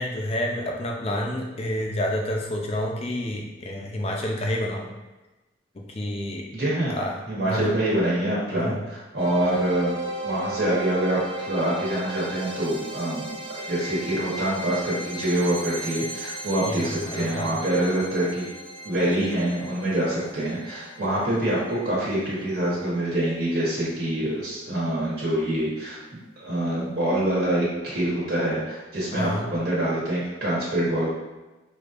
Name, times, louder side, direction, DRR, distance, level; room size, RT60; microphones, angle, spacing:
voice 1, 0.0-4.9 5.8-6.4 6.9-7.1 7.5-7.7 8.6-8.8 16.7-17.5 29.1-29.4, left 1 dB, 35° left, 0 dB, 0.5 m, -29 dB
voice 2, 6.5-6.9 7.3-13.4 13.7-18.5 18.8-26.0 26.4-31.1, right 1 dB, 60° right, -7 dB, 1.2 m, -25 dB
sound 1, 9.2-24.1, right 1 dB, 30° right, 0.5 m, -36 dB
4.9 x 2.7 x 2.5 m, 1.1 s
head